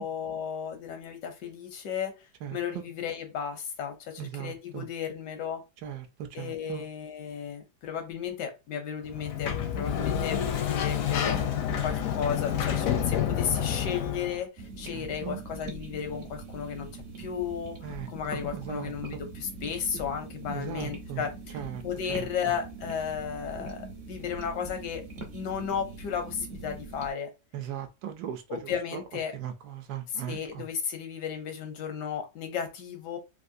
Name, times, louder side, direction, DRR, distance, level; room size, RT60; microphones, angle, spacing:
voice 1, 0.0-2.1 2.5-5.6 6.3-25.0 25.3-27.3 28.5-29.4 30.1-33.2, left 7 dB, 85° left, 1.4 m, -34 dB
voice 2, 4.2-4.8 5.8-6.9 14.9-15.4 17.8-18.9 20.5-21.2 21.5-21.8 22.1-22.3 27.5-28.7 29.3-30.6, right 10 dB, 75° right, 1.2 m, -38 dB
Sliding door, 9.1-14.4, left 9 dB, 70° left, 0.9 m, -28 dB
sound 1, 14.6-27.1, right 2 dB, 50° right, 0.8 m, -42 dB
3.5 x 2.5 x 2.6 m
omnidirectional pair, 1.8 m